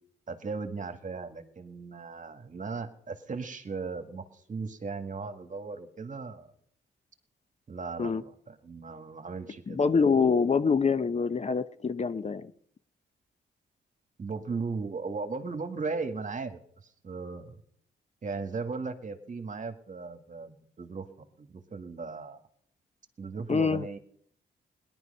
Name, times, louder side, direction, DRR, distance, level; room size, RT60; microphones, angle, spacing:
voice 1, 0.3-6.5 7.7-9.8 14.2-16.6 17.0-17.6 18.2-22.4 23.2-24.0, right 4 dB, 40° right, 8 dB, 1.8 m, -37 dB
voice 2, 9.7-12.5 23.5-23.9, left 5 dB, 35° left, 12 dB, 0.8 m, -25 dB
18.0 x 11.0 x 5.5 m, 0.65 s
cardioid pair, 70°, 19 cm